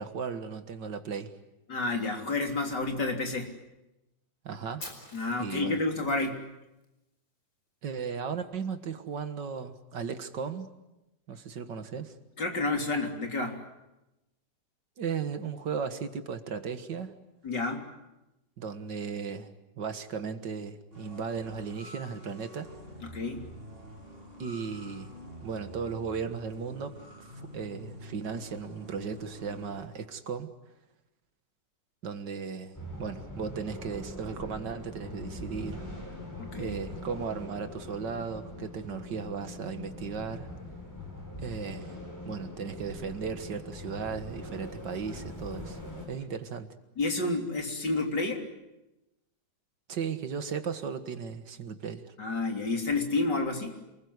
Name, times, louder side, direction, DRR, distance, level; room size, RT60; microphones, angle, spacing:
voice 1, 0.0-1.3 4.4-4.9 5.4-5.8 7.8-10.7 11.3-12.1 15.0-17.1 18.6-22.7 24.4-25.1 25.4-27.0 27.4-30.5 32.0-35.8 36.6-40.5 41.4-42.0 42.3-45.8 46.1-46.7 49.9-52.0, right 6 dB, 70° right, 9 dB, 2.3 m, -36 dB
voice 2, 1.7-3.5 5.1-6.4 12.4-13.6 17.4-17.8 23.0-23.5 36.4-36.8 47.0-48.4 52.2-53.8, left 3 dB, 65° left, 3 dB, 4.1 m, -30 dB
Fire, 4.8-6.9, left 2 dB, 50° left, 5.5 m, -47 dB
sound 1, 20.9-29.8, equal, 30° right, 6.8 m, -47 dB
sound 2, 32.7-46.1, left 1 dB, 10° left, 7.2 m, -42 dB
28.0 x 21.0 x 9.7 m, 0.98 s
omnidirectional pair, 2.0 m